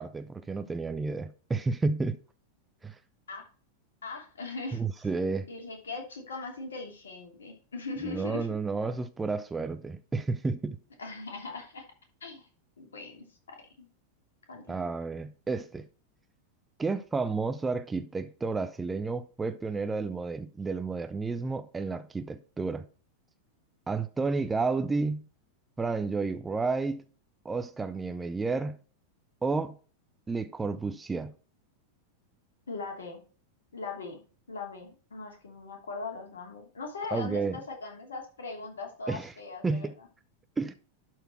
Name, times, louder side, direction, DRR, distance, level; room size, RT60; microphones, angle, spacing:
voice 1, 0.0-2.2 2.8-2.9 4.7-5.5 8.0-10.8 14.7-15.9 16.8-22.8 23.9-25.3 25.8-27.0 27.4-28.8 29.4-29.8 30.3-31.3 37.1-37.6 39.1-39.3 39.6-39.9 40.6-40.7, right 4 dB, 10° right, 0.7 m, -31 dB
voice 2, 4.0-4.8 5.5-8.5 11.0-11.8 12.2-12.5 12.8-13.9 14.5-14.8 32.7-33.2 33.7-34.2 34.5-40.1, left 3 dB, 70° left, 2.9 m, -40 dB
11.5 x 4.7 x 4.4 m
figure-of-eight pair, 90°, 0 cm